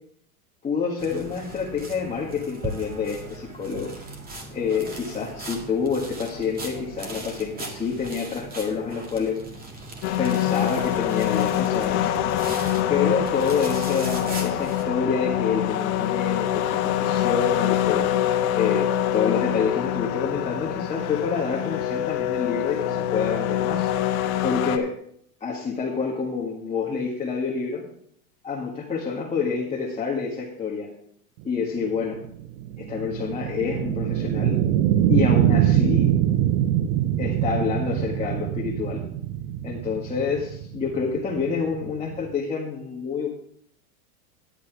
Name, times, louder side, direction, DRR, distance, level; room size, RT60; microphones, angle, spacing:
voice 1, 0.6-3.9 4.5-9.4 10.2-12.1 12.9-18.1 18.5-23.9 24.4-24.9 25.4-27.8 28.4-30.9 31.4-32.2 32.8-34.6 35.1-36.1 37.2-39.0 39.6-43.3, left 5 dB, 15° left, -3 dB, 1.7 m, -27 dB
sound 1, 1.0-14.8, right 2 dB, 20° right, 2.0 m, -38 dB
sound 2, 10.0-24.8, left 11 dB, 70° left, 1.3 m, -25 dB
sound 3, 31.6-42.3, right 11 dB, 45° right, 0.9 m, -24 dB
11.0 x 8.3 x 4.7 m, 0.68 s
supercardioid pair, 130°, 43 cm